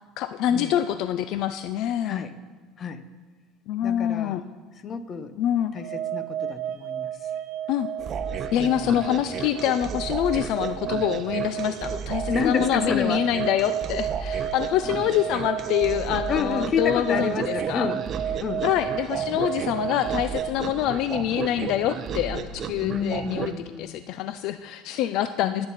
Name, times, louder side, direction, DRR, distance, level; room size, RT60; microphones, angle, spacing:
voice 1, 0.2-2.2 3.7-4.4 5.4-5.7 7.7-7.9 8.5-17.9 18.6-23.5 23.8-25.7, left 11 dB, 60° left, 11 dB, 0.5 m, -26 dB
voice 2, 3.8-4.4 4.8-5.3 5.7-7.1 8.3-8.9 12.3-13.3 16.3-18.0 18.4-18.6 22.8-24.0 25.4-25.7, left 6 dB, 35° left, 12 dB, 0.8 m, -29 dB
sound 1, 5.8-20.5, right 10 dB, 65° right, 1.4 m, -33 dB
sound 2, 8.0-23.6, right 6 dB, 35° right, 0.8 m, -34 dB
21.0 x 8.8 x 4.1 m, 1.5 s
cardioid pair, 135°, 0 cm